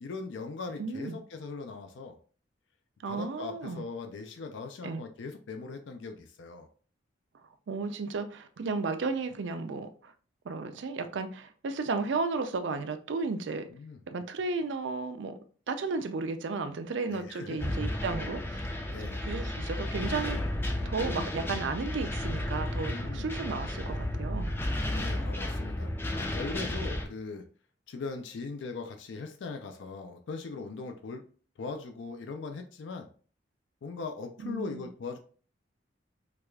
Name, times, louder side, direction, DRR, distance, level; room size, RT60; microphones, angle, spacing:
voice 1, 0.0-2.2 3.0-6.7 13.7-14.0 17.1-17.6 18.9-19.2 22.9-23.3 24.9-27.5 27.9-31.2 31.6-33.1 33.8-35.2, left 4 dB, 80° left, 0.4 m, -40 dB
voice 2, 0.8-1.2 3.0-3.8 4.8-5.0 7.7-10.1 10.4-13.7 14.1-15.4 15.7-18.7 19.0-20.4 20.9-24.5 34.4-34.9, right 4 dB, 75° right, 0.4 m, -34 dB
sound 1, 17.6-27.1, left 1 dB, 10° left, 0.3 m, -33 dB
4.7 x 2.3 x 2.2 m
head